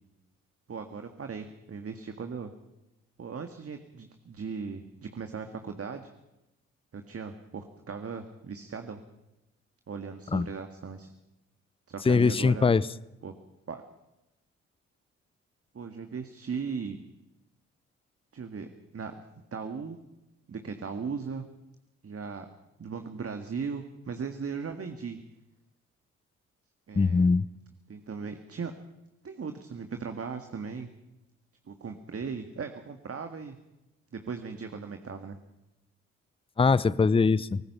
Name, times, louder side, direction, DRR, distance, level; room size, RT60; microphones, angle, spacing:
voice 1, 0.7-2.5 3.2-6.1 6.9-9.0 9.9-11.1 11.9-12.8 13.2-13.3 13.7-13.8 15.7-17.0 18.3-19.3 19.5-20.0 20.5-21.5 22.0-22.5 22.8-25.2 26.9-27.3 27.9-28.7 29.2-30.9 31.7-33.6 34.1-35.4, right 5 dB, 40° right, 7 dB, 1.8 m, -38 dB
voice 2, 12.1-12.9 26.9-27.5 36.6-37.6, left 4 dB, 15° left, 21 dB, 0.6 m, -22 dB
23.5 x 19.0 x 5.7 m, 0.94 s
hypercardioid pair, 45°, 35 cm